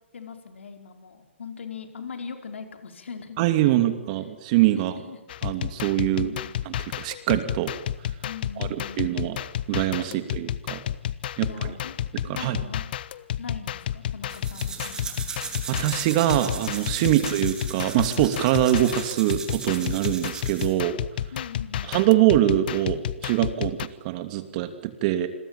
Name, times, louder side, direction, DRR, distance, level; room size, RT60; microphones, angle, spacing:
voice 1, 0.1-3.4 3.7-3.9 4.7-5.2 6.0-6.6 8.2-9.1 10.0-10.6 11.4-11.9 12.3-12.8 13.4-15.2 17.0-17.2 21.3-21.9, left 5 dB, 75° left, 6 dB, 5.0 m, -40 dB
voice 2, 3.4-4.9 5.4-6.3 6.7-7.7 8.6-9.4 9.7-10.8 11.4-11.7 12.4-12.6 15.7-21.0 21.9-25.3, right 14 dB, 35° right, 9 dB, 2.8 m, -23 dB
sound 1, 5.3-23.9, left 11 dB, 50° left, 1.2 m, -31 dB
sound 2, 14.3-20.8, right 5 dB, 10° right, 3.6 m, -37 dB
28.0 x 22.0 x 9.0 m, 0.87 s
hypercardioid pair, 145°, 7 cm